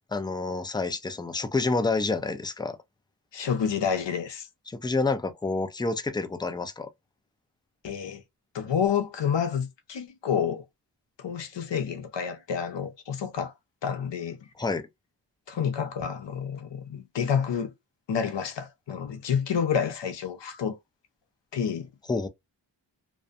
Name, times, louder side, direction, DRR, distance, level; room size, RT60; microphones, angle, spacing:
voice 1, 0.1-2.8 4.7-6.9 14.6-14.9 22.1-22.3, left 3 dB, 10° left, 0.4 m, -28 dB
voice 2, 3.3-4.5 7.8-8.2 8.5-10.6 11.2-13.5 13.8-14.4 15.5-17.7 18.1-20.8 21.5-21.9, left 7 dB, 70° left, 0.7 m, -29 dB
2.5 x 2.2 x 2.4 m
wide cardioid pair, 70°, 44 cm